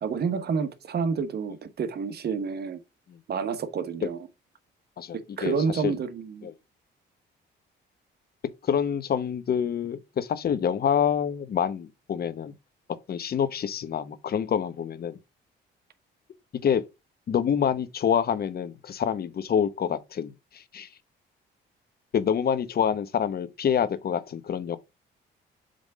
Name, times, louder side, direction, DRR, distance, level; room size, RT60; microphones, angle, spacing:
voice 1, 0.0-2.8 3.3-4.2 5.4-6.5, right 5 dB, 55° right, 1.3 m, -29 dB
voice 2, 5.0-5.6 5.8-5.9 6.4-6.5 8.6-12.5 13.1-15.2 16.6-16.8 17.3-20.9 22.1-24.8, left 8 dB, 50° left, 0.9 m, -27 dB
7.5 x 3.5 x 5.0 m
cardioid pair, 90°, 20 cm